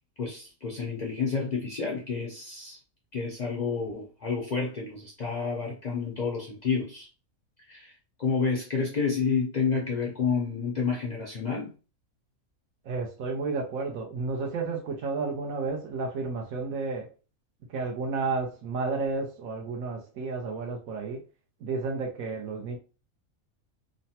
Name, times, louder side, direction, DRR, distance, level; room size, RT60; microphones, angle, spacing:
voice 1, 0.2-2.8 3.1-7.1 7.7-7.9 8.2-11.7, left 5 dB, 80° left, -2 dB, 0.3 m, -29 dB
voice 2, 12.8-17.1 17.7-21.2 21.6-22.8, right 4 dB, 75° right, 1 dB, 1.0 m, -32 dB
3.1 x 2.1 x 2.7 m, 0.34 s
omnidirectional pair, 1.5 m